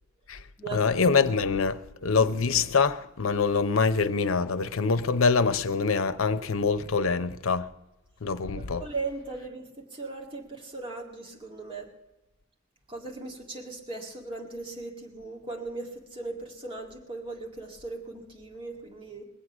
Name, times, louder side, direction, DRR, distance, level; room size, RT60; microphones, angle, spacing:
voice 1, 0.7-7.7 8.2-8.9, left 4 dB, 80° left, 0.7 m, -25 dB
voice 2, 8.6-11.9 12.9-19.2, right 3 dB, 25° right, 1.9 m, -38 dB
22.0 x 8.1 x 6.1 m
head